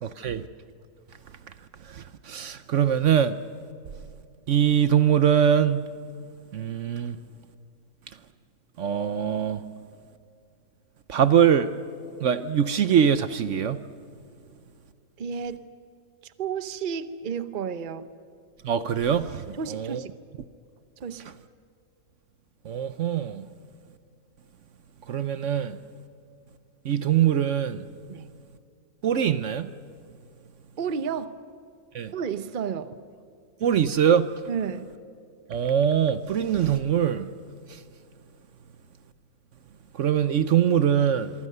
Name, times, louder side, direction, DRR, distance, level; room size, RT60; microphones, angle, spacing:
voice 1, 1.8-3.4 4.5-5.9 6.5-7.2 8.8-9.6 11.1-11.7 12.2-13.8 18.6-20.0 22.6-23.5 25.1-25.8 26.8-27.9 29.0-29.7 31.9-32.1 33.6-34.3 35.5-37.3 37.7-37.8 39.9-41.3, right 8 dB, 65° right, 1.0 m, -23 dB
voice 2, 15.2-15.7 16.2-18.1 19.5-20.1 21.0-21.3 28.1-28.3 30.8-31.4 32.1-33.0 34.5-34.9, right 7 dB, 40° right, 0.9 m, -32 dB
25.5 x 24.5 x 6.7 m
omnidirectional pair, 1.4 m